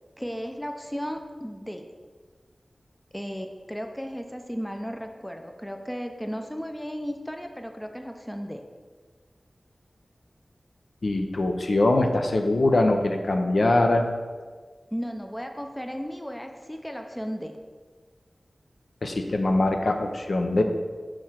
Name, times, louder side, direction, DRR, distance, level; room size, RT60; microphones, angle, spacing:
voice 1, 0.2-1.8 3.1-8.6 14.9-17.5, equal, 5° left, 4 dB, 0.5 m, -35 dB
voice 2, 11.0-14.1 19.0-20.6, left 2 dB, 70° left, 4 dB, 0.6 m, -22 dB
4.8 x 4.5 x 5.7 m, 1.5 s
wide cardioid pair, 85°, 0 cm